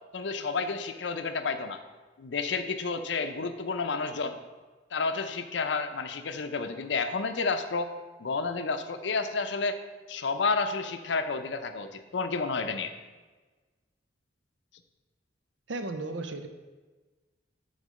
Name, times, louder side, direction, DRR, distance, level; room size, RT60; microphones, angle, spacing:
voice 1, 0.1-1.8 2.2-4.4 4.9-7.9 8.2-9.8 10.1-12.9, left 4 dB, 70° left, 9 dB, 0.6 m, -30 dB
voice 2, 15.7-16.5, right 2 dB, 75° right, 8 dB, 0.7 m, -34 dB
6.6 x 3.9 x 6.3 m, 1.3 s
head